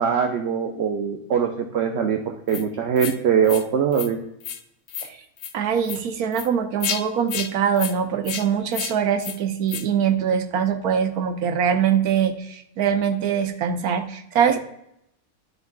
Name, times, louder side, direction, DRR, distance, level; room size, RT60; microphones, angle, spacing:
voice 1, 0.0-2.2 2.5-4.2, right 7 dB, 60° right, 3 dB, 0.7 m, -22 dB
sound 1, 2.5-2.6 3.0-3.2 3.4-3.6 3.9-4.1 4.4-4.6 4.9-5.1 5.4-5.5 5.8-6.0 6.3-6.5 6.8-7.0 7.3-7.5 7.8-7.9 8.2-8.4 8.7-8.9 9.2-9.4 9.7-9.8, left 8 dB, 85° left, 1.1 m, -30 dB
voice 2, 5.5-14.6, right 8 dB, 80° right, 6 dB, 1.2 m, -23 dB
11.5 x 4.0 x 2.3 m, 0.76 s
omnidirectional pair, 1.6 m